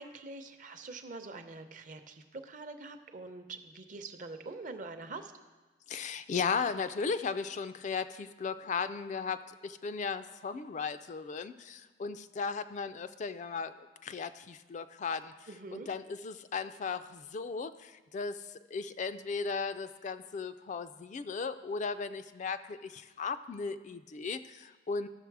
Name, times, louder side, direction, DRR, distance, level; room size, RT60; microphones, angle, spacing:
voice 1, 0.0-5.3 15.5-15.9, right 3 dB, 45° right, 8 dB, 0.7 m, -45 dB
voice 2, 5.9-13.7 14.0-25.1, left 5 dB, 40° left, 11 dB, 0.3 m, -36 dB
13.0 x 6.5 x 4.7 m, 1.2 s
head